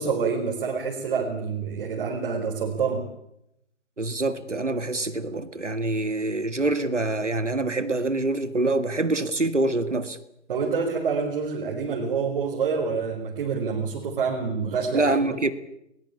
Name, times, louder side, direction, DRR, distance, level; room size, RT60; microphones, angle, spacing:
voice 1, 0.0-3.1 10.5-15.2, right 5 dB, 45° right, 4.5 m, -27 dB
voice 2, 4.0-10.2 14.9-15.5, right 2 dB, 85° right, 2.1 m, -25 dB
21.5 x 20.5 x 8.5 m
figure-of-eight pair, 130°, 35 cm